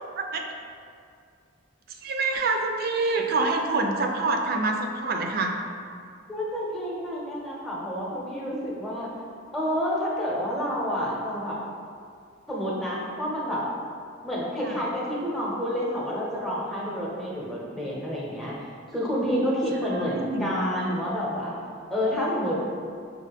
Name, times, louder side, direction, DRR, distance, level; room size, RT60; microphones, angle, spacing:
voice 1, 2.0-5.6 14.6-14.8 19.8-20.5, right 3 dB, 50° right, 3 dB, 0.4 m, -26 dB
voice 2, 6.3-9.1 9.5-11.6 12.5-13.7 14.2-18.5 18.9-21.6 21.9-22.6, equal, ahead, -6 dB, 0.8 m, -29 dB
6.2 x 2.2 x 3.5 m, 2.3 s
head